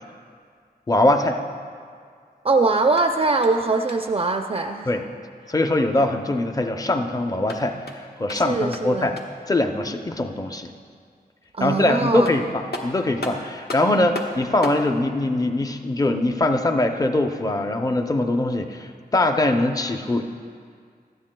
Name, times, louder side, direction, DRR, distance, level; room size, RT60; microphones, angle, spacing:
voice 1, 0.9-1.4 4.9-5.0 5.5-7.8 8.2-9.1 9.5-10.7 11.6-20.2, left 2 dB, 20° left, 5 dB, 0.6 m, -22 dB
voice 2, 2.4-4.9 8.3-9.2 11.5-12.3, right 3 dB, 35° right, 5 dB, 0.4 m, -22 dB
sound 1, 2.8-4.2 7.3-9.5 11.8-11.9 12.2-14.9, left 1 dB, 70° left, 1.1 m, -36 dB
18.0 x 13.0 x 2.2 m, 2.1 s
wide cardioid pair, 100°, 17 cm